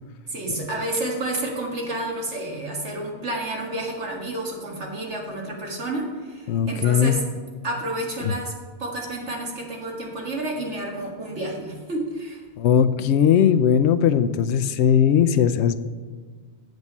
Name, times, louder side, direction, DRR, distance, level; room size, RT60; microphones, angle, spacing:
voice 1, 0.3-7.2 7.6-8.5 8.8-12.4, right 1 dB, 80° right, -1 dB, 2.1 m, -30 dB
voice 2, 6.5-7.2 8.2-8.3 12.6-15.8, left 8 dB, 75° left, 12 dB, 0.9 m, -19 dB
8.0 x 7.2 x 5.3 m, 1.5 s
omnidirectional pair, 1.2 m